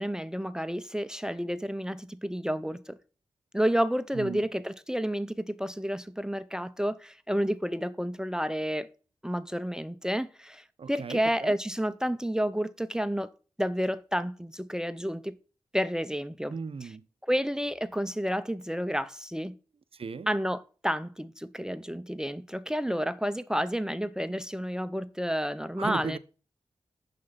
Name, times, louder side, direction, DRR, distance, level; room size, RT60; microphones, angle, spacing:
voice 1, 0.0-3.0 3.5-8.9 9.2-13.3 13.6-15.3 15.7-16.5 17.3-19.6 20.3-26.2, equal, 5° right, 0.5 m, -30 dB
voice 2, 10.8-11.5 16.5-17.0 19.9-20.3 25.8-26.2, right 5 dB, 55° right, 0.6 m, -36 dB
6.4 x 5.9 x 4.0 m
cardioid pair, 40°, 12 cm